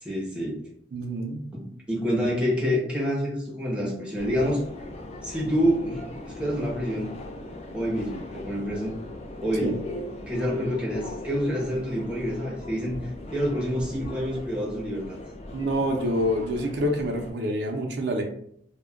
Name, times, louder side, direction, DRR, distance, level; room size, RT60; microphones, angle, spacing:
voice 1, 0.0-0.6 1.5-4.6 5.2-7.1 7.7-9.0 9.4-9.8 10.3-15.2, equal, 5° right, -4 dB, 0.7 m, -27 dB
voice 2, 0.9-1.4 9.6-9.7 15.5-18.2, equal, 70° right, 1 dB, 0.5 m, -27 dB
Subway metro underground, 4.2-17.3, left 1 dB, 35° left, 0.3 m, -39 dB
2.2 x 2.1 x 3.6 m, 0.69 s
head